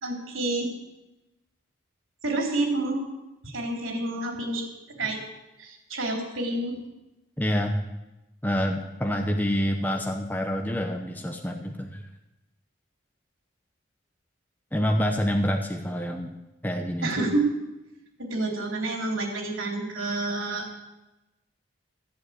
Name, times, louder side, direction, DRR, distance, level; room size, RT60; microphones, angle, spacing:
voice 1, 0.0-0.7 2.2-3.0 3.4-4.7 5.0-5.2 5.6-6.8 17.0-17.5 18.2-20.7, right 2 dB, 90° right, 1 dB, 3.6 m, -28 dB
voice 2, 7.4-7.7 8.4-12.0 14.7-16.3 16.6-17.2, equal, 10° left, 3 dB, 0.9 m, -27 dB
14.0 x 8.1 x 8.0 m, 0.99 s
head